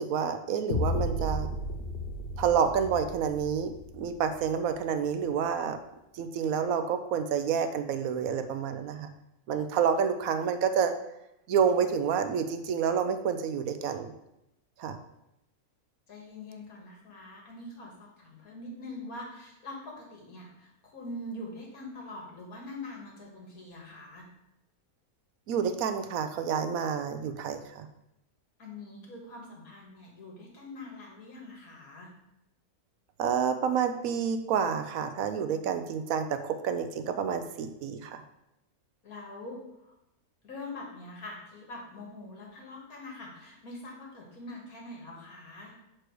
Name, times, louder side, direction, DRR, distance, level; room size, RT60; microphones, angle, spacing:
voice 1, 0.0-1.5 2.4-5.8 6.1-9.1 9.5-11.0 11.5-14.1 14.8-15.0 25.5-27.9 33.2-38.2, right 7 dB, 75° right, 9 dB, 1.0 m, -29 dB
sound 1, 0.7-4.7, left 1 dB, 55° left, 0.8 m, -33 dB
voice 2, 16.1-24.3 28.6-32.1 39.0-39.9 40.4-45.8, left 2 dB, 75° left, -1 dB, 2.0 m, -44 dB
6.3 x 4.5 x 4.6 m, 0.87 s
omnidirectional pair, 1.6 m